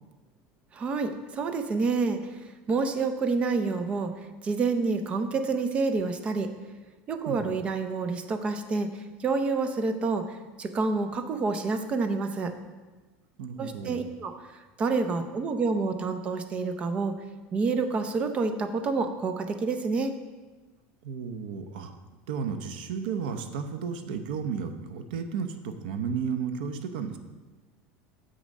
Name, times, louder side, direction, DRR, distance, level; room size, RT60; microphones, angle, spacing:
voice 1, 0.7-4.1 4.4-6.5 7.1-12.5 13.6-17.2 17.5-20.1, right 4 dB, 25° right, 8 dB, 0.6 m, -28 dB
voice 2, 13.4-14.0 21.0-21.9 22.3-27.2, right 6 dB, 85° right, 8 dB, 0.9 m, -33 dB
7.8 x 6.3 x 5.3 m, 1.3 s
cardioid pair, 160°, 5 cm